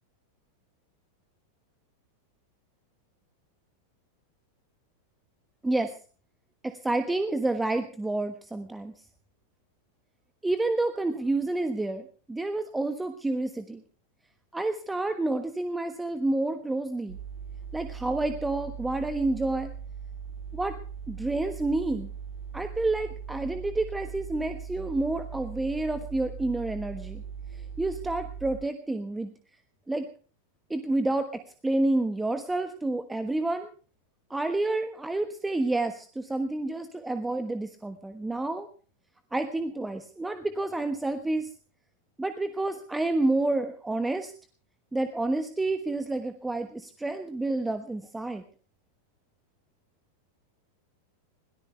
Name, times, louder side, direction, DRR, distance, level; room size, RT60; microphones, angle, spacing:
voice 1, 5.6-5.9 6.6-8.9 10.4-13.8 14.5-17.2 17.7-19.7 20.5-20.8 21.1-22.1 22.5-27.2 27.5-29.3 29.9-30.1 30.7-33.7 34.3-38.7 39.3-41.5 42.2-44.3 44.9-48.4, right 2 dB, 10° right, 9 dB, 1.3 m, -29 dB
sound 1, 17.1-28.6, right 7 dB, 55° right, 8.0 m, -40 dB
22.0 x 17.5 x 3.3 m, 0.39 s
figure-of-eight pair, 90°, 0 cm